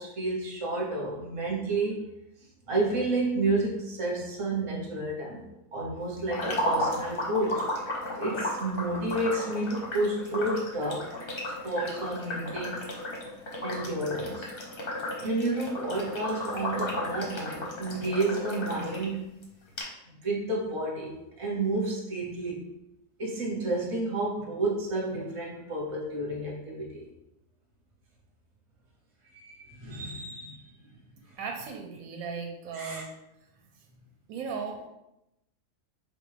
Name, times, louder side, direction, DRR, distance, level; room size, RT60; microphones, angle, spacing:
voice 1, 0.0-2.0 2.7-5.4 5.7-7.7 8.1-11.1 11.6-12.8 13.6-14.5 15.2-19.3 20.1-22.7 23.2-27.1 29.3-30.6 32.7-33.0, right 2 dB, 30° right, -2 dB, 0.7 m, -30 dB
sound 1, 6.3-19.1 19.4-19.5 19.8-19.9, left 1 dB, 45° left, 0.8 m, -34 dB
voice 2, 31.4-33.1 34.3-34.9, right 5 dB, 70° right, 2 dB, 0.9 m, -36 dB
4.4 x 2.5 x 3.2 m, 0.88 s
omnidirectional pair, 1.7 m